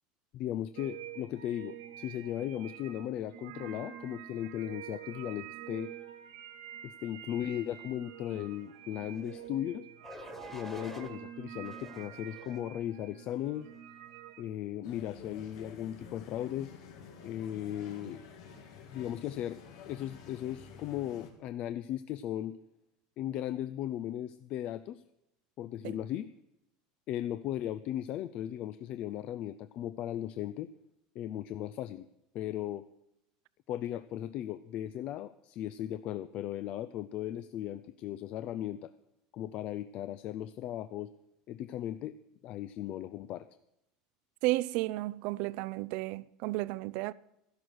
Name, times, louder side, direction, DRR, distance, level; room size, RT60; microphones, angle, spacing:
voice 1, 0.3-5.9 6.8-9.9 10.5-13.7 14.4-16.7 17.2-18.2 18.9-22.6 23.2-25.0 25.6-26.3 27.1-30.7 31.1-32.1 32.3-32.8 33.7-38.9 39.3-41.1 41.5-42.2 42.4-43.5, left 12 dB, 50° left, 0.5 m, -37 dB
sound 1, 0.8-14.6, right 11 dB, 85° right, 1.4 m, -47 dB
sound 2, 9.1-9.5 10.0-11.1 11.6-12.7 13.3-13.6, left 2 dB, 10° left, 1.7 m, -50 dB
sound 3, 14.8-21.3, left 6 dB, 85° left, 2.5 m, -50 dB
voice 2, 44.4-47.1, right 19 dB, 65° right, 0.4 m, -33 dB
13.0 x 11.5 x 6.3 m
supercardioid pair, 115°, 3 cm